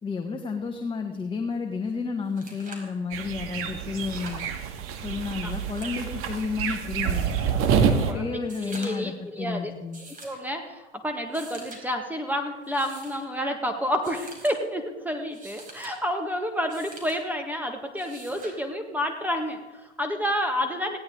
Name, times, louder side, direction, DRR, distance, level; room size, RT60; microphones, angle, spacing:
voice 1, 0.0-4.4 5.0-7.3 7.7-10.0, left 5 dB, 15° left, 3 dB, 1.6 m, -31 dB
sound 1, 1.9-2.0 2.2-2.9 3.8-4.5 5.4-6.1 7.0-7.5 8.4-9.1 9.9-10.4 11.2-11.8 12.6-13.2 14.0-14.6 15.2-16.0 16.7-17.2 18.0-18.6 20.0-20.1, right 2 dB, 25° right, 4.8 m, -45 dB
sound 2, 3.1-8.1, right 7 dB, 40° right, 2.0 m, -27 dB
voice 2, 8.6-9.7 10.2-21.0, equal, 5° right, 4 dB, 1.7 m, -29 dB
19.5 x 16.5 x 3.9 m, 1.1 s
figure-of-eight pair, 85°, 33 cm